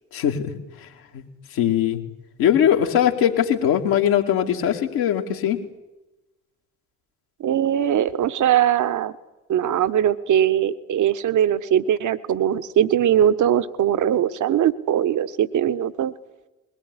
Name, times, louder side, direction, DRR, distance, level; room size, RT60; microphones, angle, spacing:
voice 1, 0.1-0.5 0.8-0.9 1.1-1.2 1.5-2.0 2.4-5.6, left 9 dB, 65° left, 2 dB, 2.7 m, -20 dB
voice 2, 7.4-9.1 9.5-16.1, right 10 dB, 50° right, 14 dB, 1.4 m, -20 dB
22.0 x 18.0 x 9.8 m, 1.0 s
figure-of-eight pair, 45°, 38 cm